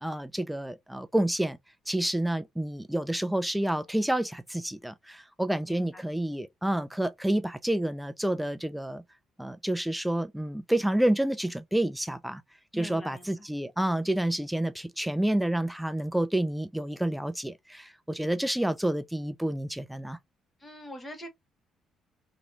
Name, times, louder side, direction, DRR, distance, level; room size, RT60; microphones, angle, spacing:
voice 1, 0.0-1.6 1.9-9.0 9.4-12.4 12.7-20.2, right 1 dB, 5° right, 0.4 m, -29 dB
voice 2, 5.7-6.1 12.7-13.5 20.6-21.3, equal, 15° left, 1.2 m, -43 dB
3.0 x 3.0 x 2.5 m
cardioid pair, 140°, 0 cm